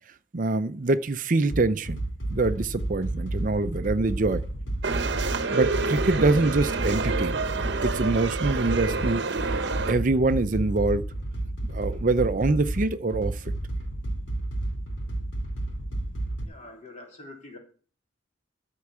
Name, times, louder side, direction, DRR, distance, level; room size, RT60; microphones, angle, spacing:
voice 1, 0.3-2.0 2.3-4.4 5.5-7.4 7.8-9.2 9.5-11.0 11.6-13.5, right 2 dB, 45° right, 11 dB, 0.6 m, -25 dB
sound 1, 1.5-16.4, right 1 dB, 85° left, 3.1 m, -31 dB
sound 2, 4.8-9.9, right 3 dB, 65° right, 0.9 m, -28 dB
voice 2, 16.4-17.6, left 2 dB, 35° left, 0 dB, 3.5 m, -45 dB
13.5 x 4.7 x 8.4 m, 0.42 s
head